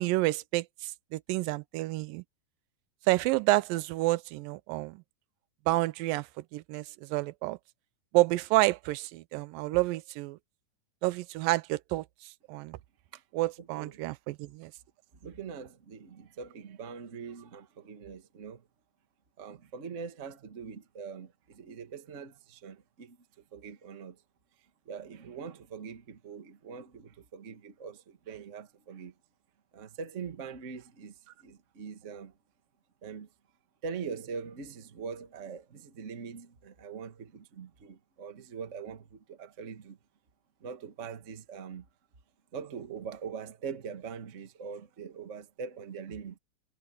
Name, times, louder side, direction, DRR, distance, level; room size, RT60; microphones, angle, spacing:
voice 1, 0.0-2.2 3.1-5.0 5.7-6.3 6.5-7.6 8.1-10.4 11.0-12.8 13.3-14.7, right 19 dB, 85° right, 2.3 m, -29 dB
voice 2, 13.6-14.0 15.2-18.7 19.4-23.2 23.5-24.2 24.8-29.1 29.7-32.3 33.0-33.3 33.8-40.0 40.6-41.9 42.5-46.4, right 6 dB, 40° right, 1.1 m, -42 dB
omnidirectional pair, 3.9 m